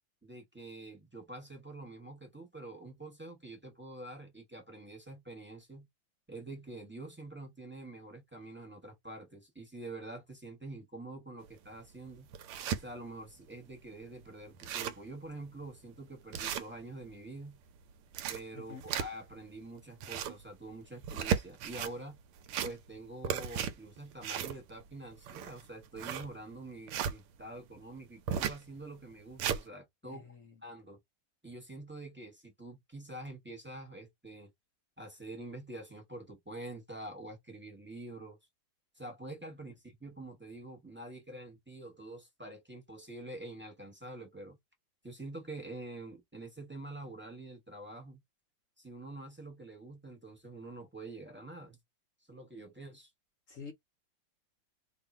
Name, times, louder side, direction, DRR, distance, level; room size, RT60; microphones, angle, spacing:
voice 1, 0.2-5.9 6.3-12.3 12.8-17.6 18.3-22.2 22.6-30.2 30.6-31.0 31.4-34.5 35.0-38.4 38.9-44.6 45.0-48.2 48.8-51.8 52.3-53.1, right 2 dB, 15° right, 0.4 m, -46 dB
sound 1, 11.5-11.6 12.1-12.8 13.4-13.5 13.7-13.8 14.2-14.3 14.5-15.1 15.5-15.7 16.3-17.1 17.9-19.4 19.8-20.4 21.0-21.9 22.4-23.0 23.2-27.2 28.3-28.6 29.1-29.6, right 8 dB, 85° right, 1.5 m, -35 dB
voice 2, 30.0-30.5 53.5-53.7, left 5 dB, 70° left, 0.7 m, -48 dB
3.5 x 2.4 x 4.1 m
omnidirectional pair, 2.4 m